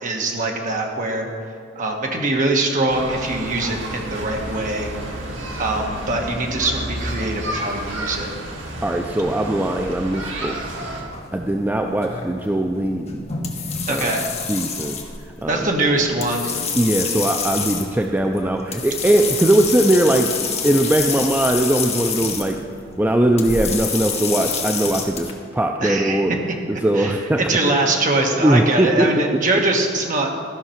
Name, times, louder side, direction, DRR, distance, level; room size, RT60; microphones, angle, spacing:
voice 1, 0.0-1.3 1.7-4.9 5.6-8.3 13.9-14.3 15.5-16.6 25.8-26.2 26.9-30.3, right 2 dB, 40° right, 1 dB, 1.3 m, -22 dB
sound 1, 2.9-11.0, right 1 dB, 75° right, 1.7 m, -31 dB
voice 2, 8.8-10.6 11.3-13.2 13.9-14.1 14.5-15.0 15.4-15.7 16.8-20.3 20.6-22.6 23.0-26.4 26.7-27.7 28.4-29.4, right 1 dB, 10° right, 3 dB, 0.4 m, -20 dB
sound 2, 10.5-25.3, left 5 dB, 35° left, 1.1 m, -28 dB
14.0 x 5.7 x 5.8 m, 2.2 s
head